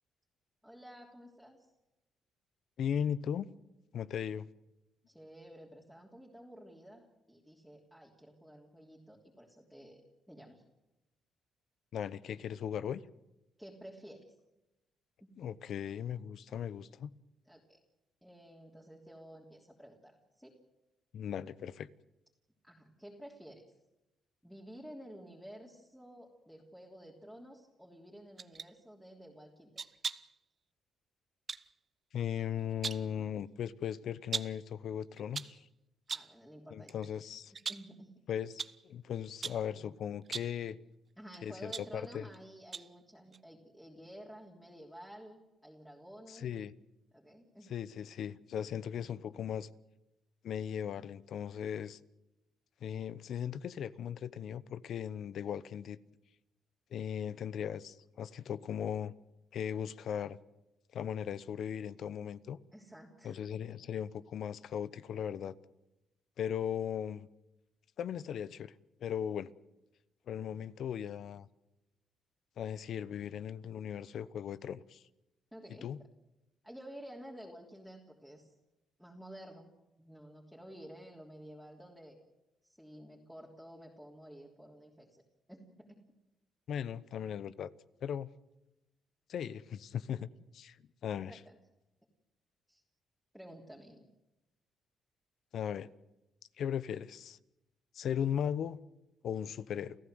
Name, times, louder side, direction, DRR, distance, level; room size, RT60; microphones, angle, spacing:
voice 1, 0.6-1.7 5.1-10.6 13.6-14.3 15.2-15.3 17.4-17.8 18.2-20.6 22.6-23.7 24.4-29.8 36.1-36.9 37.7-38.1 41.2-46.5 47.1-47.7 62.7-63.6 75.5-75.9 76.6-78.6 79.0-79.7 80.0-82.2 82.6-85.2 85.5-86.0 91.3-91.6 92.7-92.8 93.3-94.1, equal, ahead, 3.2 m, -52 dB
voice 2, 2.8-3.5 3.9-4.5 11.9-13.0 15.4-17.1 21.1-21.9 32.1-35.7 36.7-37.5 38.3-40.8 41.4-42.2 46.3-46.7 47.7-49.7 50.4-52.0 52.8-56.0 56.9-59.1 59.5-60.4 60.9-62.6 63.2-65.5 66.4-67.3 68.0-68.7 69.0-69.5 70.3-71.5 72.6-75.0 75.8-76.0 86.7-87.7 88.0-88.3 89.3-90.3 90.5-90.8 91.0-91.3 95.5-95.9 96.6-97.4 97.9-98.8 99.2-100.0, left 9 dB, 65° left, 0.8 m, -38 dB
sound 1, 28.4-28.7 29.8-30.4 31.5-31.7 32.6-33.1 34.3-34.7 35.2-35.6 36.1-36.4 36.9-37.1 37.5-38.0 38.6-38.8 39.4-39.7 40.2-40.6 41.3-42.4 42.7-43.0 43.3-43.4, right 5 dB, 40° right, 0.8 m, -40 dB
29.0 x 15.0 x 7.9 m
cardioid pair, 90°, 0 cm